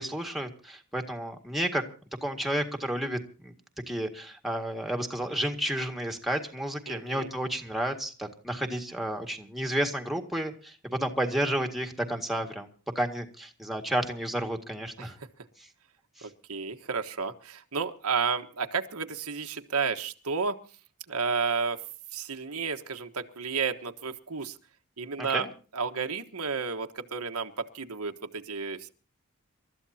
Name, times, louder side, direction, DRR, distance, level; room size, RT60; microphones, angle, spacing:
voice 1, 0.0-1.8 2.2-3.5 3.9-12.7 13.0-15.2 16.2-16.3 25.2-25.5, right 1 dB, ahead, 5 dB, 1.9 m, -31 dB
voice 2, 6.9-7.3 15.0-15.1 16.2-20.6 21.1-21.8 22.1-24.6 25.0-25.5 25.7-28.9, right 5 dB, 80° right, 6 dB, 1.3 m, -32 dB
28.0 x 13.5 x 2.8 m, 0.38 s
head